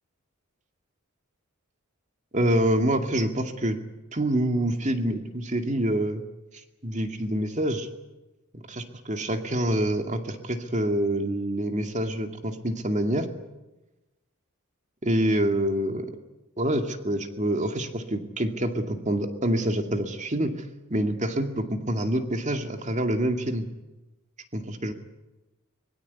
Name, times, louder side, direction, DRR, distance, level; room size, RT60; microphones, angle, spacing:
voice 1, 2.3-3.8 4.1-6.2 6.8-7.9 8.5-13.3 15.0-16.1 16.6-20.6 20.9-23.7 24.5-24.9, right 1 dB, 35° right, 6 dB, 2.3 m, -26 dB
24.5 x 22.0 x 8.3 m, 1.0 s
head